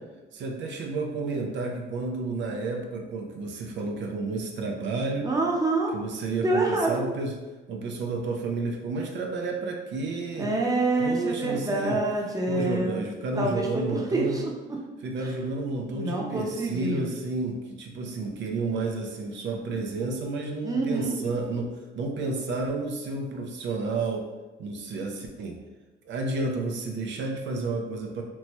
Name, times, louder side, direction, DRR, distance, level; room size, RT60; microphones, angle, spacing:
voice 1, 0.3-5.3 5.9-7.3 7.7-10.5 11.0-12.0 12.5-14.4 15.0-21.7 21.9-24.3 24.6-25.6 26.1-28.2, right 3 dB, 65° right, 2 dB, 0.4 m, -31 dB
voice 2, 5.2-5.9 6.4-6.9 10.4-13.0 13.4-14.5 15.9-17.1 20.6-21.2, right 2 dB, 20° right, -1 dB, 0.6 m, -26 dB
2.9 x 2.1 x 2.9 m, 1.2 s
cardioid pair, 90°, 20 cm